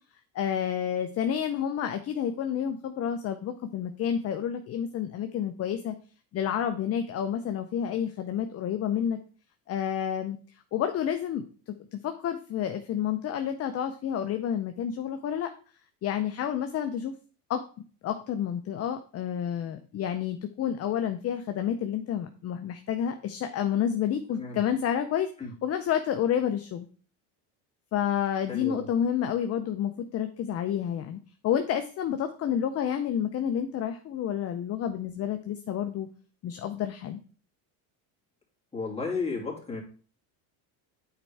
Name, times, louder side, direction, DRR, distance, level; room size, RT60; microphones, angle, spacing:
voice 1, 0.3-5.9 6.3-9.2 9.7-10.4 10.7-15.5 16.0-17.1 17.5-17.6 18.0-25.3 25.6-26.9 27.9-36.1 36.4-37.2, left 9 dB, 35° left, 7 dB, 0.6 m, -29 dB
voice 2, 28.5-28.9 38.7-39.8, left 4 dB, 15° left, -2 dB, 2.6 m, -33 dB
8.9 x 4.5 x 3.4 m, 0.41 s
supercardioid pair, 110°, 45 cm